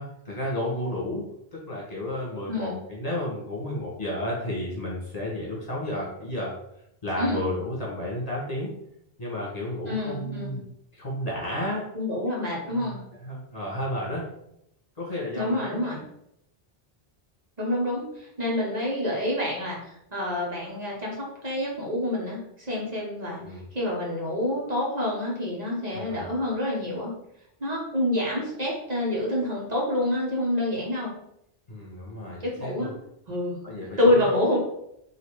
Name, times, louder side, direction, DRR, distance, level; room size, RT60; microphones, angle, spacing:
voice 1, 0.0-6.5 7.0-8.7 9.2-10.6 10.9-11.9 12.7-14.3 15.0-15.9 23.4-23.6 25.9-26.2 31.7-32.9 33.6-34.3, left 1 dB, 40° left, -5 dB, 1.6 m, -32 dB
voice 2, 9.9-10.5 11.9-13.0 15.4-16.0 17.6-19.8 20.1-23.4 23.7-27.1 27.6-31.1 32.4-32.9 33.3-33.5 34.0-34.6, left 1 dB, 40° right, -5 dB, 1.3 m, -27 dB
4.0 x 2.7 x 4.7 m, 0.79 s
omnidirectional pair, 1.0 m